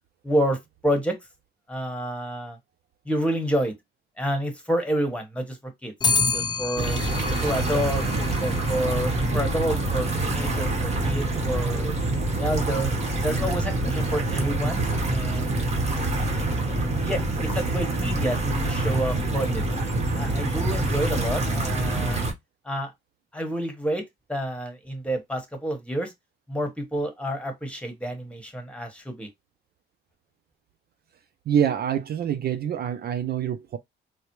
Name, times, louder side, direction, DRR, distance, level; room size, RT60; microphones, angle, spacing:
voice 1, 0.2-1.1 1.7-2.6 3.0-3.7 4.2-7.0 7.4-11.9 12.4-12.9 13.2-15.6 17.0-19.6 20.2-22.2 22.6-22.9 23.3-24.0 24.3-26.1 26.5-29.3, equal, 5° left, 1.3 m, -29 dB
Clock, 6.0-15.4, left 4 dB, 20° left, 0.3 m, -33 dB
sound 1, 6.8-22.3, right 2 dB, 35° right, 1.3 m, -26 dB
voice 2, 31.5-33.8, right 9 dB, 55° right, 0.4 m, -26 dB
4.1 x 2.0 x 3.0 m
cardioid pair, 90°, 20 cm